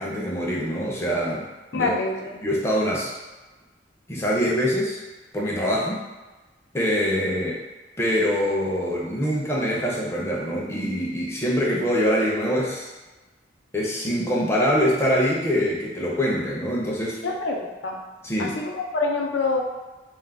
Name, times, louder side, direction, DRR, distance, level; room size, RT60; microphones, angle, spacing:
voice 1, 0.0-1.5 1.7-2.0 2.4-3.1 4.1-5.0 5.3-6.0 6.7-7.6 8.0-12.9 13.7-17.2 18.2-18.6, equal, 15° left, -4 dB, 0.4 m, -24 dB
voice 2, 1.7-2.4 17.2-18.0 18.4-19.6, left 3 dB, 85° left, 2 dB, 0.4 m, -26 dB
2.3 x 2.1 x 3.3 m, 1.2 s
head